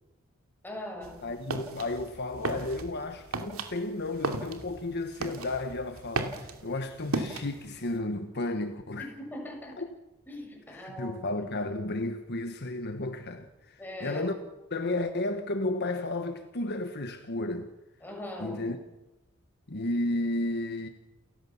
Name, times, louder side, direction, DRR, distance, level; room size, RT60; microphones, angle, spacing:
voice 1, 0.6-1.2 9.0-9.7 10.3-11.4 13.8-14.2 18.0-18.6, left 1 dB, 10° left, 6.8 m, -41 dB
sound 1, 1.0-8.0, right 2 dB, 75° right, 2.7 m, -36 dB
voice 2, 1.2-9.1 9.8-9.9 10.7-14.3 14.7-17.7 18.4-18.8 19.7-20.9, left 2 dB, 50° left, 1.3 m, -33 dB
29.0 x 15.5 x 7.2 m
head